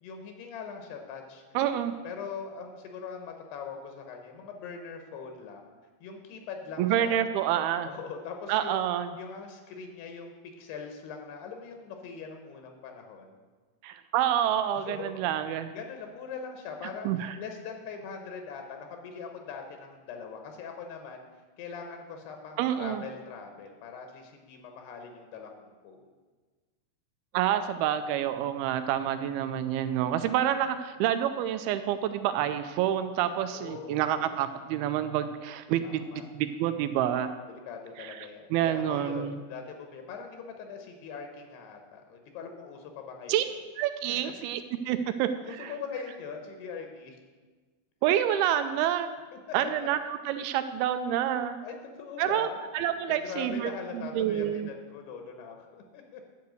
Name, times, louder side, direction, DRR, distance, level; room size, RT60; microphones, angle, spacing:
voice 1, 0.0-5.7 6.0-7.2 7.9-8.8 9.2-13.4 14.7-15.1 15.7-21.2 21.6-26.0 33.5-34.3 35.8-36.3 37.5-43.4 44.1-44.3 45.4-47.2 49.3-49.4 51.6-52.6 53.1-56.2, left 5 dB, 85° left, 4 dB, 3.0 m, -42 dB
voice 2, 1.6-1.9 6.8-7.9 8.5-9.1 13.8-15.7 17.1-17.4 22.6-23.0 27.3-36.0 36.3-37.3 38.0-38.2 38.5-39.4 43.3-43.4 43.8-45.7 48.0-49.1 49.5-50.0 50.3-51.6 52.2-52.5 52.7-54.7, right 10 dB, 80° right, 10 dB, 2.3 m, -28 dB
10.5 x 5.7 x 7.7 m, 1.4 s
omnidirectional pair, 4.7 m